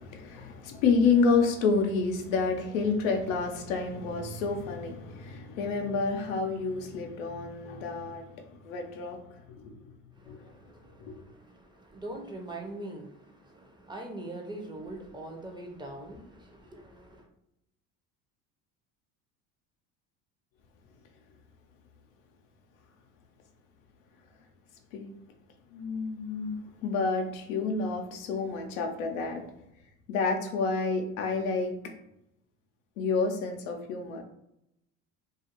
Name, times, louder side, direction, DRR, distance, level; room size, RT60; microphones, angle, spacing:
voice 1, 0.0-8.4 8.6-9.2 9.5-9.7 10.3-10.4 11.1-11.2 24.9-25.1 25.7-29.4 30.1-31.7 33.0-34.2, left 4 dB, 85° left, 0.6 m, -29 dB
voice 2, 10.1-17.3, right 1 dB, 10° right, 0.6 m, -43 dB
2.4 x 2.4 x 2.8 m
hypercardioid pair, 75°, 40 cm